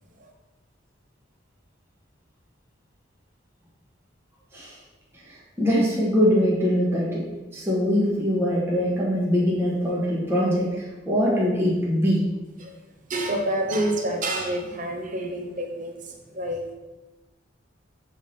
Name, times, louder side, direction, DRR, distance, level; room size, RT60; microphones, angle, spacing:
voice 1, 5.3-12.2, equal, 10° right, -6 dB, 1.2 m, -23 dB
voice 2, 13.1-16.7, right 1 dB, 40° right, 3 dB, 0.8 m, -28 dB
7.3 x 3.3 x 4.2 m, 1.2 s
head